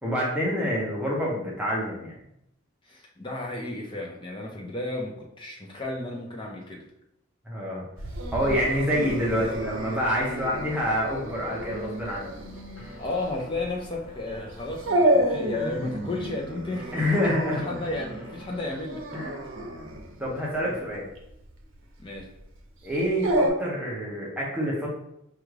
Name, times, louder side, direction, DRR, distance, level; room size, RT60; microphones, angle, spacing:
voice 1, 0.0-2.1 7.5-7.8 8.3-12.3 12.8-12.9 16.9-17.6 19.1-19.3 20.2-21.0 22.8-24.9, equal, 5° right, -5 dB, 0.8 m, -27 dB
voice 2, 2.9-6.8 13.0-17.1 17.6-19.0 20.7-20.8 22.0-22.3, left 2 dB, 25° left, -1 dB, 0.6 m, -33 dB
Dog, 8.0-23.5, right 1 dB, 70° right, 0.7 m, -30 dB
sound 1, 8.9-18.8, left 2 dB, 55° left, 1.3 m, -48 dB
4.9 x 2.4 x 3.2 m, 0.80 s
head